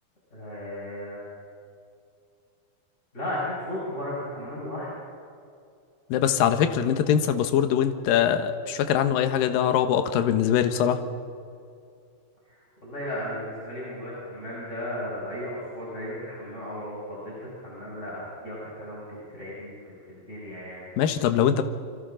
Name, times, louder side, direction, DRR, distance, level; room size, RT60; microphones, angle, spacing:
voice 1, 0.3-1.2 3.1-4.9 12.5-20.9, left 1 dB, 15° left, -8 dB, 5.8 m, -35 dB
voice 2, 6.1-11.0 21.0-21.6, left 9 dB, 75° left, 8 dB, 2.1 m, -22 dB
28.5 x 24.5 x 3.9 m, 2.4 s
omnidirectional pair, 5.4 m